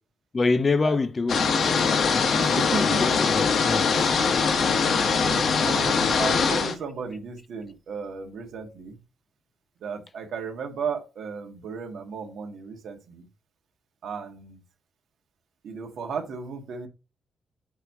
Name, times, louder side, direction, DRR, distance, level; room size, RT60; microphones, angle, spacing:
voice 1, 0.3-1.8 2.5-4.2, left 3 dB, 25° left, 0.5 m, -26 dB
sound 1, 1.3-6.7, left 5 dB, 50° left, 1.1 m, -22 dB
voice 2, 2.4-3.2 5.0-9.0 9.8-13.3 14.0-14.6 15.6-16.9, right 5 dB, 65° right, 1.6 m, -35 dB
8.1 x 3.1 x 4.7 m
wide cardioid pair, 155°, 0 cm